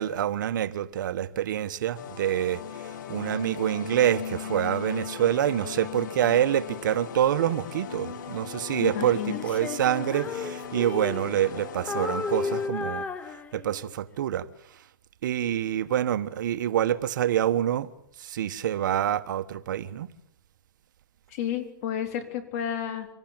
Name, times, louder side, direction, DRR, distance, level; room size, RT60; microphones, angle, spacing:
voice 1, 0.0-14.5 15.2-17.9 18.2-20.1, right 11 dB, 65° right, 1.3 m, -26 dB
sound 1, 1.9-12.7, left 8 dB, 60° left, 2.7 m, -38 dB
voice 2, 8.8-9.6 21.3-23.1, left 9 dB, 45° left, 3.9 m, -31 dB
Female singing, 9.3-11.6 11.9-13.9, left 4 dB, 10° left, 0.9 m, -33 dB
25.5 x 18.0 x 9.0 m
hypercardioid pair, 150°, 11 cm